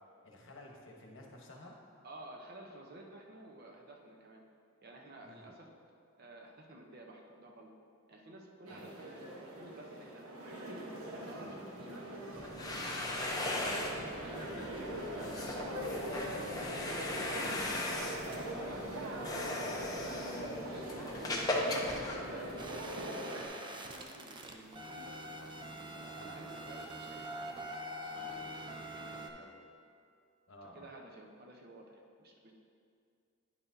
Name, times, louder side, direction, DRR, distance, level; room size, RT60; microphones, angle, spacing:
voice 1, 0.2-1.7 5.2-5.5 8.7-8.9 16.4-16.8 17.6-17.8 26.2-26.3 30.5-30.9, left 1 dB, 65° left, -1 dB, 1.0 m, -54 dB
voice 2, 2.0-4.4 4.8-5.7 6.2-7.7 8.1-10.8 11.2-12.0 13.9-14.7 15.9-16.6 17.4-21.5 22.3-23.3 23.7-25.1 25.8-27.6 28.0-29.5 30.7-32.5, right 1 dB, 50° right, 0 dB, 0.8 m, -53 dB
sound 1, 8.7-23.5, right 1 dB, 90° right, 1.0 m, -42 dB
sound 2, 12.3-23.0, left 1 dB, 20° left, 0.6 m, -38 dB
sound 3, 22.6-29.3, right 1 dB, 20° right, 0.4 m, -44 dB
9.5 x 5.9 x 2.7 m, 2.3 s
head